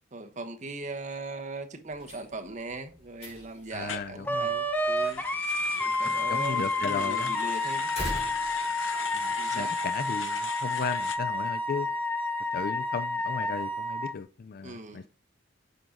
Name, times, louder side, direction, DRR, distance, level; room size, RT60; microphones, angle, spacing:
voice 1, 0.1-5.2 5.8-7.9 9.4-9.7 14.6-15.1, right 3 dB, 40° right, 1.1 m, -39 dB
sound 1, 1.9-9.4, left 1 dB, 35° left, 5.6 m, -44 dB
voice 2, 3.7-4.5 5.8-7.3 9.1-11.9 12.5-15.1, left 5 dB, 50° left, 0.4 m, -35 dB
sound 2, 3.9-4.1 4.9-11.2, left 8 dB, 75° left, 0.8 m, -40 dB
Wind instrument woodwind instrument, 4.3-14.1, left 2 dB, 10° left, 1.1 m, -30 dB
9.4 x 7.2 x 3.9 m
head